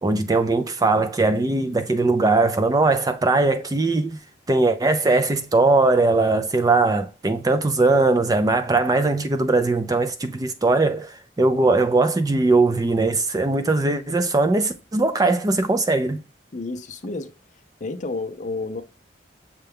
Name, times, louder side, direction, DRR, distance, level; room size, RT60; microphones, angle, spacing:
voice 1, 0.0-4.2 4.5-16.2, right 3 dB, 20° right, 0.3 m, -20 dB
voice 2, 16.5-17.3 17.8-18.8, left 3 dB, 40° left, 0.5 m, -30 dB
6.6 x 2.2 x 3.4 m
head